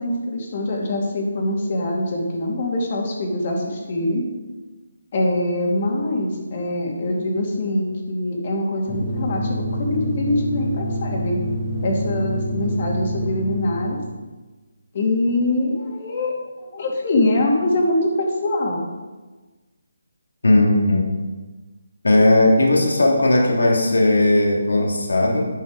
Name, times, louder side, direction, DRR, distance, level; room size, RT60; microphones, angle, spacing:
voice 1, 0.0-4.2 5.1-11.4 11.8-14.0 14.9-18.8, left 1 dB, 35° left, -1 dB, 2.3 m, -23 dB
virtual serverroom, 8.9-14.2, equal, ahead, 2.0 m, -27 dB
voice 2, 20.4-21.0 22.0-25.5, left 1 dB, 90° left, -1 dB, 2.5 m, -17 dB
11.0 x 6.2 x 5.0 m, 1.3 s
hypercardioid pair, 165°, 0 cm